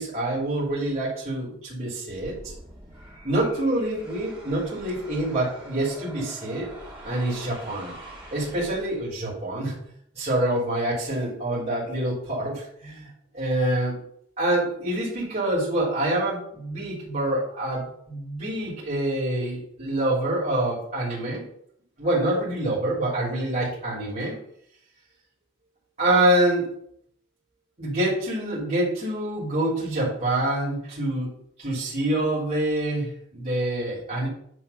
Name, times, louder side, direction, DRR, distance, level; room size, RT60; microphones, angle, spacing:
voice 1, 0.0-2.4 3.2-6.7 7.0-7.9 8.3-9.8 10.1-14.0 14.4-21.4 22.0-24.4 26.0-26.7 27.8-31.3 31.6-34.3, right 1 dB, 30° right, -8 dB, 3.2 m, -26 dB
sound 1, 2.1-9.3, right 1 dB, 5° right, 2.2 m, -44 dB
9.6 x 3.5 x 5.7 m, 0.69 s
head